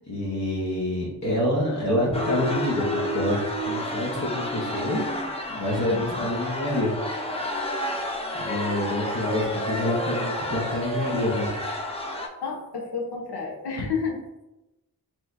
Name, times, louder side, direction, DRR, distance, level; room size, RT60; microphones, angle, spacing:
voice 1, 0.1-5.0 5.5-6.9 7.2-7.4 8.3-11.6, left 1 dB, 45° left, -5 dB, 1.0 m, -27 dB
sound 1, 2.1-12.3, left 1 dB, 15° left, 0.6 m, -30 dB
voice 2, 5.8-6.3 12.4-14.2, left 5 dB, 85° left, -1 dB, 1.1 m, -31 dB
5.5 x 3.1 x 2.7 m, 0.98 s
wide cardioid pair, 115°, 39 cm